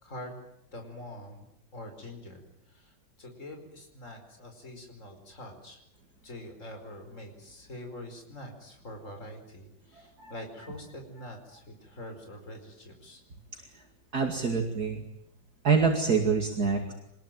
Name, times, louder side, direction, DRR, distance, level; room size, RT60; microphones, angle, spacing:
voice 1, 0.0-0.4 0.7-1.5 1.7-5.8 6.2-13.2, left 1 dB, 40° left, 4 dB, 5.2 m, -45 dB
voice 2, 10.0-10.3 14.1-15.0 15.6-16.9, right 5 dB, 50° right, 3 dB, 2.8 m, -26 dB
26.0 x 20.5 x 9.2 m, 0.81 s
omnidirectional pair, 2.1 m